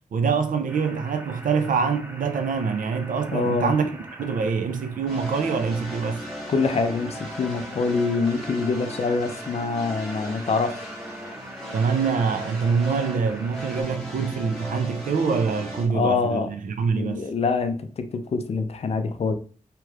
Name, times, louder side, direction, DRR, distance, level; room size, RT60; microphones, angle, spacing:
voice 1, 0.1-3.8 4.2-6.2 11.7-17.3, right 5 dB, 65° right, 0.5 m, -25 dB
sound 1, 0.7-13.8, equal, 15° right, 0.4 m, -43 dB
voice 2, 3.3-3.7 6.5-10.9 15.9-16.5 16.9-19.3, left 4 dB, 45° left, 0.4 m, -25 dB
sound 2, 5.1-15.9, equal, 5° left, 0.9 m, -37 dB
2.9 x 2.3 x 3.2 m
wide cardioid pair, 125°, 14 cm